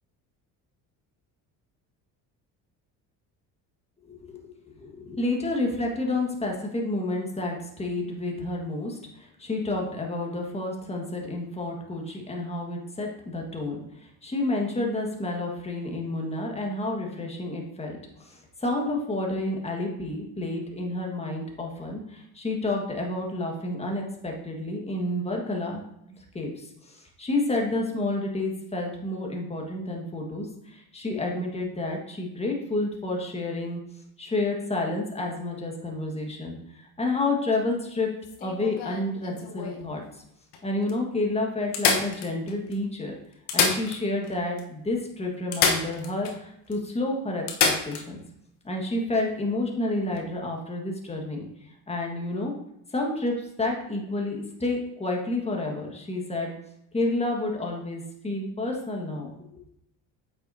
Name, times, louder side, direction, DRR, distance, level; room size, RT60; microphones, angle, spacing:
voice 1, 4.0-25.8 26.3-33.8 34.2-38.1 38.4-40.0 40.6-43.1 43.5-48.2 48.6-51.5 51.9-52.5 52.9-56.5 56.9-59.3, left 2 dB, 15° left, 0 dB, 1.6 m, -30 dB
sound 1, 38.2-39.8 40.5-40.6 40.9-41.0 41.7-42.7 43.3-44.3 44.6-44.7 45.5-46.4 46.7-46.8 47.5-48.1 50.0-50.2, left 5 dB, 70° left, 1.2 m, -27 dB
8.1 x 6.2 x 2.8 m, 0.78 s
supercardioid pair, 85°, 41 cm